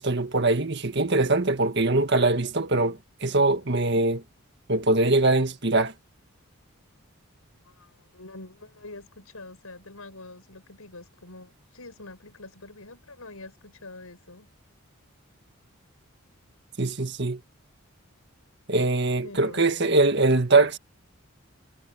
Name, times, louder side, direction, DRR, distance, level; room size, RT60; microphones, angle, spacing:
voice 1, 0.0-4.2 4.7-5.9 16.8-17.4 18.7-20.8, right 2 dB, 50° right, 1.7 m, -22 dB
voice 2, 7.6-14.5 19.2-20.0, left 2 dB, 90° left, 6.7 m, -45 dB
head